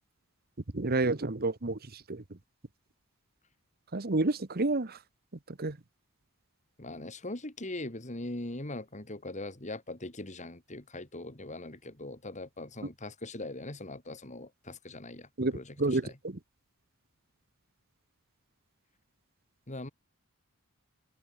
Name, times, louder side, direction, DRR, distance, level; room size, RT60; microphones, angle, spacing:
voice 1, 0.7-2.2 3.9-5.0 5.6-5.8 15.4-16.4, right 2 dB, 45° right, 1.2 m, -30 dB
voice 2, 6.8-16.1 19.7-19.9, left 2 dB, 35° left, 2.9 m, -41 dB
head